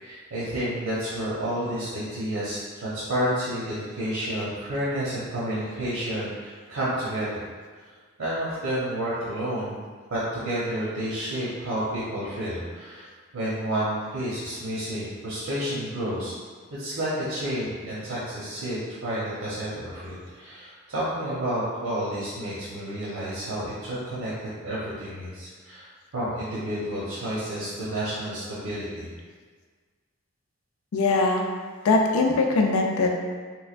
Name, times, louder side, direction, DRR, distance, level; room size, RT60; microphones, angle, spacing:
voice 1, 0.0-7.4 8.2-9.8 10.1-13.1 13.3-16.3 16.7-25.9 26.1-29.1, right 1 dB, 85° right, -9 dB, 0.8 m, -30 dB
voice 2, 30.9-31.5 31.8-33.1, left 3 dB, 90° left, 2 dB, 0.4 m, -21 dB
3.4 x 3.1 x 2.4 m, 1.5 s
head